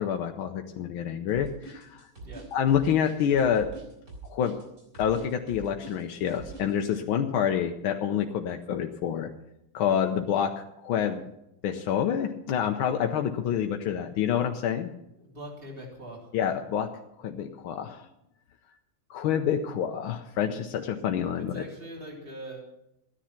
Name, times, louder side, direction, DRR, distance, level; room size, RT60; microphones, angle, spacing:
voice 1, 0.0-2.0 2.5-3.7 4.3-4.6 5.0-9.3 9.7-10.5 10.8-11.3 11.6-14.9 16.3-16.9 17.2-18.1 19.1-21.6, left 8 dB, 85° left, 4 dB, 1.7 m, -27 dB
sound 1, 1.3-6.7, right 2 dB, 45° right, 4.2 m, -44 dB
voice 2, 15.2-16.3 21.3-22.6, right 1 dB, 25° right, -1 dB, 3.4 m, -42 dB
14.5 x 10.0 x 5.8 m, 0.85 s
omnidirectional pair, 2.2 m